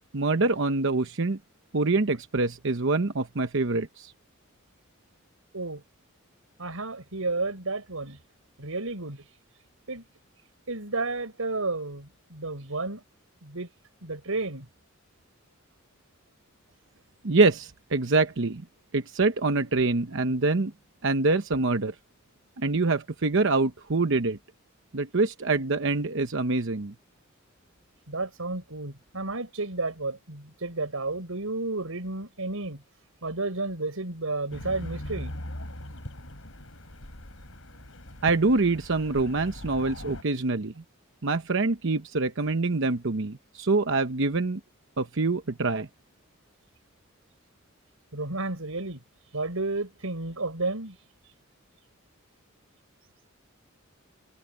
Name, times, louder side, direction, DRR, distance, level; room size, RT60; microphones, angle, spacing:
voice 1, 0.1-1.4 1.7-4.1 17.2-18.6 18.9-20.7 21.0-21.9 22.6-24.4 24.9-26.9 38.2-40.7 41.2-44.6 45.0-45.9, right 3 dB, 65° right, 0.9 m, -25 dB
voice 2, 6.6-8.2 8.6-9.4 9.9-10.0 10.7-13.0 13.4-13.7 14.0-14.7 28.1-32.8 33.2-35.3 48.1-49.0 49.3-51.3, right 2 dB, 90° right, 4.9 m, -32 dB
sound 1, 34.5-40.2, left 1 dB, 75° left, 4.5 m, -40 dB
head